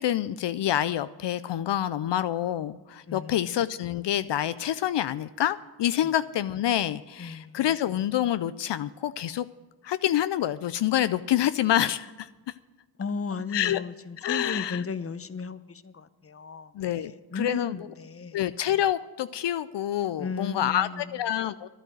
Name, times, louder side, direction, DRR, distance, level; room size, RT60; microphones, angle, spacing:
voice 1, 0.0-9.5 9.8-12.3 13.5-13.8 14.2-14.8 16.7-17.8 18.3-21.7, left 11 dB, 75° left, 0.5 m, -27 dB
voice 2, 3.1-3.4 6.0-6.1 7.2-7.6 13.0-18.4 20.2-21.2, left 5 dB, 30° left, 0.8 m, -35 dB
11.0 x 9.0 x 7.7 m
cardioid pair, 50°, 43 cm